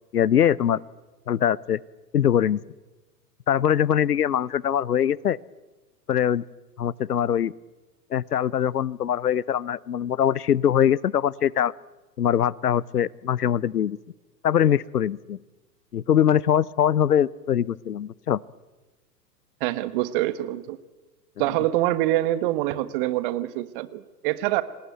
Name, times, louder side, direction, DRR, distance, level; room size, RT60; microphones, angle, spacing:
voice 1, 0.1-0.8 1.3-1.8 2.1-2.6 3.5-5.4 6.1-6.4 6.8-7.5 8.1-11.7 12.2-14.0 14.4-15.4 15.9-18.4, left 9 dB, 70° left, 24 dB, 0.8 m, -22 dB
voice 2, 19.6-20.8 21.4-24.6, right 15 dB, 30° right, 15 dB, 1.3 m, -25 dB
27.5 x 18.5 x 9.3 m, 1.2 s
figure-of-eight pair, 110°, 49 cm